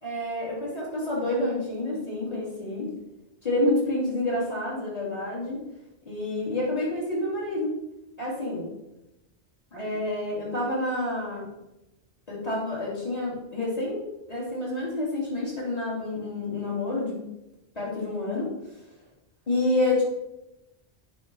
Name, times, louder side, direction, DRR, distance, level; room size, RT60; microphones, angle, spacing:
voice 1, 0.0-2.9 3.4-5.6 6.1-7.7 8.2-8.7 9.7-11.5 12.3-14.0 14.3-17.2 17.8-18.5 19.5-20.0, left 1 dB, 35° left, -6 dB, 3.7 m, -28 dB
9.9 x 5.6 x 5.7 m, 0.93 s
omnidirectional pair, 1.1 m